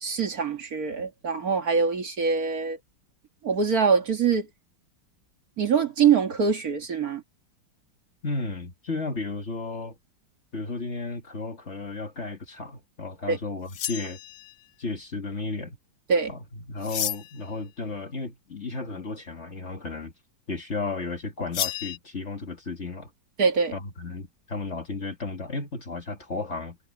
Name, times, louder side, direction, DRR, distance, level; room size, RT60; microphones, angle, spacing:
voice 1, 0.0-2.8 3.4-4.5 5.6-7.2 13.3-13.4 16.1-16.3 23.4-23.8, right 6 dB, 50° right, 1.9 m, -24 dB
voice 2, 8.2-10.0 10.5-14.2 14.8-15.8 16.3-16.4 16.7-20.1 20.5-23.1 23.7-26.8, left 3 dB, 35° left, 1.9 m, -33 dB
sound 1, 13.7-14.6 16.8-17.5 21.5-22.0, left 10 dB, 65° left, 0.8 m, -31 dB
omnidirectional pair, 2.1 m